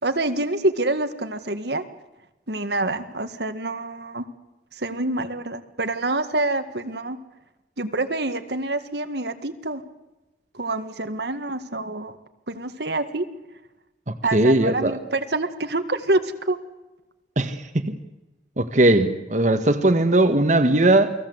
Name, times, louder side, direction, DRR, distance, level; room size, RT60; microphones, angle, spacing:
voice 1, 0.0-1.9 2.5-4.3 4.7-7.2 7.8-9.8 10.5-12.2 12.5-13.3 14.2-16.6, right 2 dB, 70° right, 1.9 m, -26 dB
voice 2, 14.3-14.9 17.4-17.6 17.8-17.9 18.6-21.1, right 1 dB, 45° right, 1.7 m, -18 dB
29.0 x 20.5 x 8.1 m
head